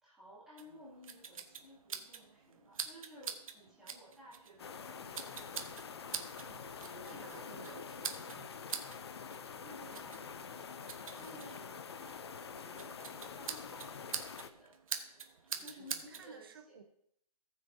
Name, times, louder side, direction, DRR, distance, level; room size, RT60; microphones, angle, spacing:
voice 1, 0.0-6.1 6.8-8.3 9.6-10.7 11.1-14.7 15.6-16.7, equal, ahead, -11 dB, 2.4 m, -56 dB
sound 1, 0.6-16.3, right 6 dB, 55° right, 1.1 m, -46 dB
sound 2, 4.6-14.5, left 6 dB, 40° left, 0.5 m, -46 dB
voice 2, 6.4-8.5 11.2-11.4 15.1-16.8, right 6 dB, 35° right, 8 dB, 0.8 m, -56 dB
18.5 x 6.4 x 2.7 m, 0.72 s
hypercardioid pair, 175°, 20 cm